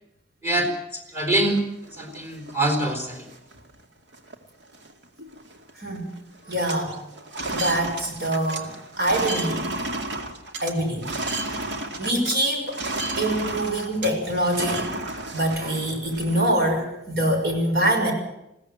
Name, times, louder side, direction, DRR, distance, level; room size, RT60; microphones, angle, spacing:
voice 1, 0.4-1.6 1.9-3.3, right 1 dB, 15° right, 5 dB, 4.0 m, -25 dB
sound 1, 1.5-2.5 3.0-3.1 3.3-3.7 4.1-4.4 4.6-5.7 6.0-6.2 6.5-12.4 12.7-16.5, right 2 dB, 80° right, 2.3 m, -32 dB
voice 2, 6.5-6.9 7.5-8.7 9.0-9.6 10.6-11.1 11.4-11.6 12.0-12.8 13.2-14.9 15.3-18.1, right 1 dB, 55° right, 3 dB, 6.1 m, -24 dB
21.5 x 16.5 x 7.9 m, 0.84 s
head